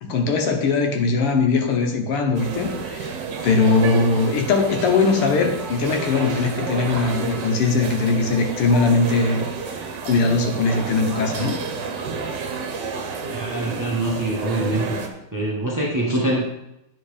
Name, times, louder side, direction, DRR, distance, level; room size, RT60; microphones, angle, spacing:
voice 1, 0.0-3.1 3.4-9.5 10.0-11.6, left 4 dB, 90° left, 3 dB, 2.1 m, -20 dB
sound 1, 2.3-15.1, right 5 dB, 60° right, 1.4 m, -30 dB
voice 2, 13.3-15.0 15.3-16.5, right 1 dB, 15° right, -4 dB, 0.7 m, -24 dB
9.5 x 4.2 x 5.0 m, 0.86 s
omnidirectional pair, 2.4 m